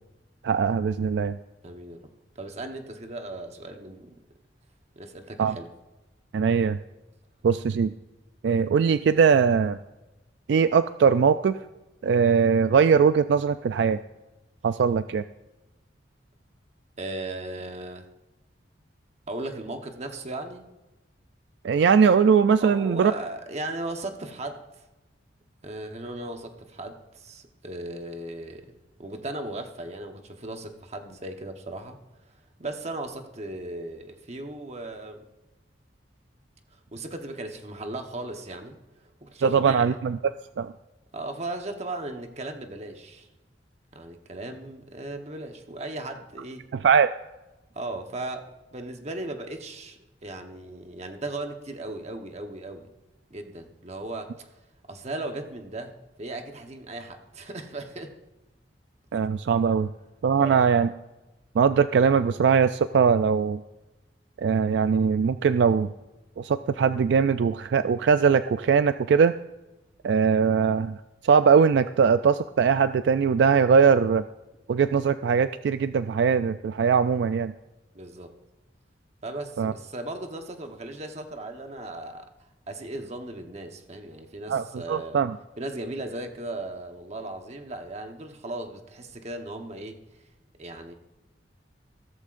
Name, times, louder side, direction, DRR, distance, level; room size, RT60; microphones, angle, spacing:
voice 1, 0.4-1.4 5.4-5.5 6.3-6.8 7.4-7.9 8.4-9.8 10.5-11.6 12.0-14.0 14.6-15.2 21.6-23.1 39.4-40.2 40.6-40.7 46.7-47.1 59.1-59.9 60.2-60.9 61.6-63.6 64.4-65.9 66.4-69.3 70.0-71.0 71.2-74.2 74.7-77.5 79.6-79.7 84.5-85.4, right 6 dB, 70° right, 12 dB, 0.3 m, -21 dB
voice 2, 1.6-2.0 2.3-4.2 5.0-5.7 17.0-18.0 19.3-20.6 22.6-24.9 25.6-35.2 36.9-40.0 41.1-43.3 43.9-46.7 47.7-52.9 53.3-54.5 54.9-58.1 60.4-60.6 77.9-78.3 79.2-82.3 82.7-85.2 85.6-90.0 90.6-90.9, right 2 dB, 35° right, 5 dB, 1.1 m, -37 dB
15.5 x 13.5 x 2.5 m, 1.0 s
head